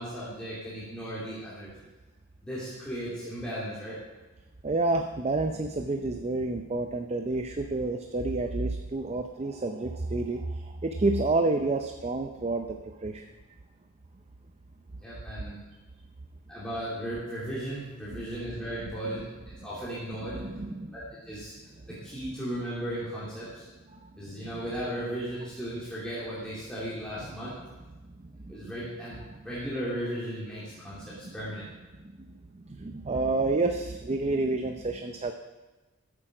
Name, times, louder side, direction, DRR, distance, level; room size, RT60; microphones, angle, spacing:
voice 1, 0.0-1.7 2.4-4.0 15.0-15.6 16.5-19.3 19.6-20.4 20.9-21.5 21.9-23.7 24.2-27.6 28.5-31.7, equal, 5° left, -10 dB, 2.7 m, -36 dB
voice 2, 4.6-12.8 13.0-13.2 18.2-18.3 20.4-20.9 24.0-24.1 27.4-27.5 28.6-28.7 31.2-31.3 32.5-35.3, right 2 dB, 30° right, 5 dB, 0.5 m, -29 dB
13.5 x 8.5 x 4.9 m, 1.2 s
head